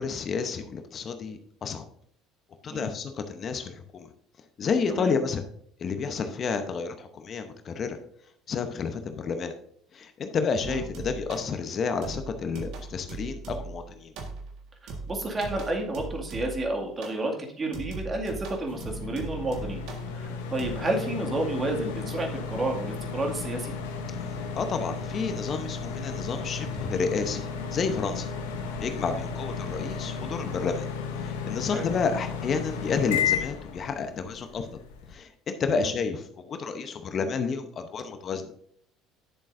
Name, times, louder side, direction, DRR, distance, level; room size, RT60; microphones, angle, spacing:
voice 1, 0.0-1.8 2.6-4.1 4.6-5.5 5.8-8.0 8.5-9.5 9.9-14.1 24.6-28.3 28.8-30.9 31.2-34.7 35.1-38.5, left 5 dB, 45° left, 8 dB, 0.9 m, -30 dB
sound 1, 10.6-11.5 12.0-13.8 14.2-14.6 14.9-16.7 17.0-17.3 17.7-20.1 20.6-20.7, right 3 dB, 65° right, 1.6 m, -39 dB
voice 2, 14.8-19.8 20.1-23.7 31.7-31.9 35.7-35.9, right 2 dB, 30° right, 2 dB, 2.2 m, -31 dB
sound 2, 18.7-35.1, left 6 dB, 80° left, 1.0 m, -34 dB
10.0 x 7.2 x 2.6 m, 0.64 s
hypercardioid pair, 70°, 0 cm